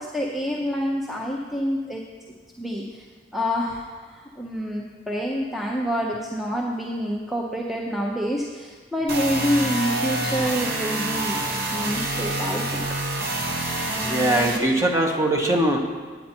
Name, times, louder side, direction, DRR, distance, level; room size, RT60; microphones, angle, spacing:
voice 1, 0.0-2.0 2.6-3.0 3.3-11.4 11.7-12.8, equal, ahead, -2 dB, 0.6 m, -27 dB
sound 1, 9.1-14.6, right 2 dB, 55° right, 1.1 m, -27 dB
voice 2, 14.0-15.8, right 1 dB, 15° right, 1 dB, 1.0 m, -21 dB
9.3 x 9.1 x 4.4 m, 1.4 s
head